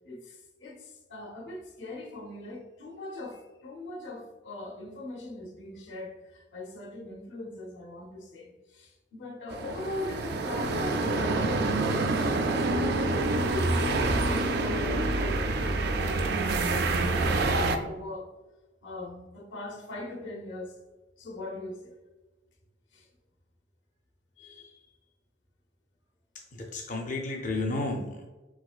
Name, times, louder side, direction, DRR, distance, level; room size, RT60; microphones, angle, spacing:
voice 1, 0.0-18.3 18.8-20.8 21.2-21.9 22.9-23.1 24.4-24.9, left 2 dB, 85° left, 0.9 m, -40 dB
sound 1, 9.5-17.8, right 2 dB, 60° right, 0.4 m, -27 dB
voice 2, 26.5-28.3, left 2 dB, 45° left, 0.5 m, -32 dB
4.9 x 3.8 x 2.4 m
head